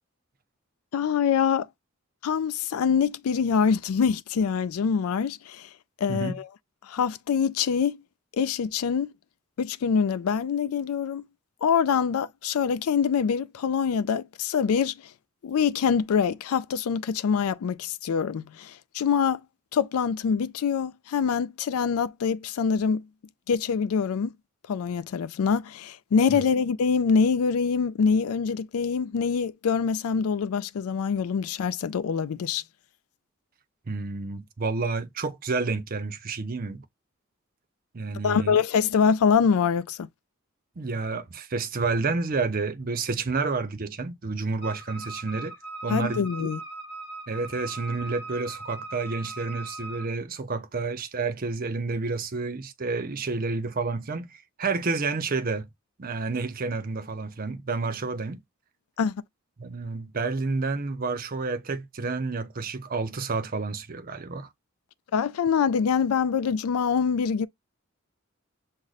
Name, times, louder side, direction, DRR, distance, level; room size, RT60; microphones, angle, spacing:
voice 1, 0.9-1.7 2.2-5.7 6.0-6.5 6.8-8.0 8.4-9.1 9.6-11.3 11.6-14.9 15.4-19.4 19.7-23.0 23.5-24.3 24.7-32.6 38.2-40.1 45.9-46.6 59.0-59.2 65.1-67.5, left 6 dB, 85° left, 0.4 m, -25 dB
voice 2, 33.9-36.9 37.9-38.6 40.8-45.5 45.8-46.5 47.3-55.7 56.0-58.4 59.6-64.5, right 4 dB, 40° right, 0.6 m, -30 dB
Wind instrument woodwind instrument, 44.6-50.1, right 2 dB, 35° left, 4.0 m, -40 dB
6.2 x 2.1 x 4.0 m
head